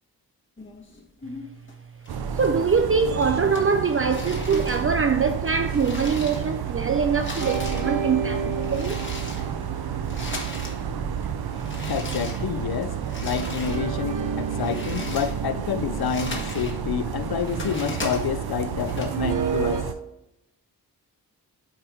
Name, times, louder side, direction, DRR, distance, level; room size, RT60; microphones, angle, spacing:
sound 1, 0.6-1.7 2.1-2.9 3.2-6.8 7.0-10.8 11.1-13.9 14.3-16.8 17.2-19.0, left 2 dB, 30° left, 1.6 m, -38 dB
sound 2, 2.1-19.9, right 8 dB, 85° right, 0.7 m, -31 dB
voice 1, 2.3-9.0, right 5 dB, 35° right, 0.5 m, -23 dB
sound 3, 7.4-12.0 13.6-17.8 19.1-19.8, right 5 dB, 55° right, 0.9 m, -33 dB
voice 2, 11.7-19.9, left 8 dB, 75° left, 0.6 m, -29 dB
9.1 x 3.5 x 4.5 m
wide cardioid pair, 95°, 37 cm